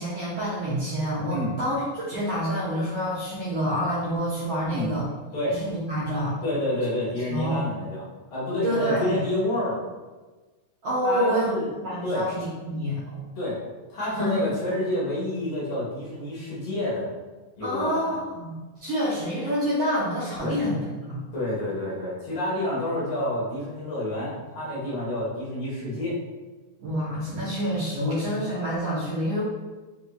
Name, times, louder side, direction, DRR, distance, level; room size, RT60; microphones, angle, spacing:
voice 1, 0.0-5.0 5.5-6.4 7.3-7.6 8.6-9.2 10.8-11.6 11.8-13.2 14.0-14.4 17.6-20.8 21.1-21.2 26.8-29.4, equal, 75° right, -9 dB, 1.4 m, -27 dB
voice 2, 6.4-8.0 8.3-9.8 11.0-11.7 12.0-12.3 13.3-13.6 13.9-17.1 17.6-18.1 20.4-20.6 21.3-26.2, left 1 dB, 50° left, -7 dB, 1.7 m, -28 dB
5.8 x 2.8 x 2.3 m, 1.2 s
omnidirectional pair, 3.9 m